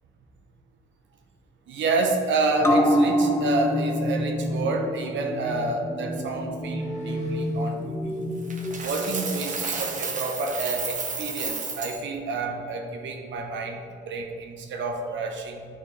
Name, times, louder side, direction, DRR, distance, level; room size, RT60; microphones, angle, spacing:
voice 1, 1.7-8.3 8.8-15.7, right 3 dB, 70° right, 3 dB, 0.9 m, -29 dB
sound 1, 2.6-9.5 9.9-10.0, equal, 15° left, 0.8 m, -26 dB
sound 2, 6.5-7.9 9.8-10.1 10.4-11.5, left 1 dB, 35° left, 1.5 m, -37 dB
Coin (dropping), 8.5-12.0, right 4 dB, 40° right, 0.9 m, -32 dB
10.0 x 4.1 x 3.2 m, 2.5 s
cardioid pair, 90°, 20 cm